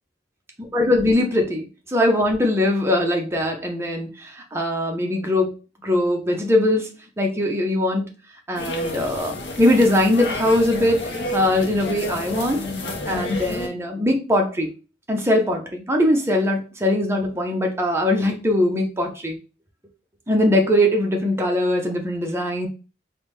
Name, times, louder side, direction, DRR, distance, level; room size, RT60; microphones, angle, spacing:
voice 1, 0.7-5.5 5.8-6.9 7.2-8.1 8.5-12.6 13.1-14.7 15.1-19.4 20.3-22.7, left 1 dB, 15° right, 2 dB, 0.6 m, -21 dB
sound 1, 8.5-13.7, left 1 dB, 75° left, 0.6 m, -30 dB
3.4 x 2.1 x 3.1 m, 0.33 s
head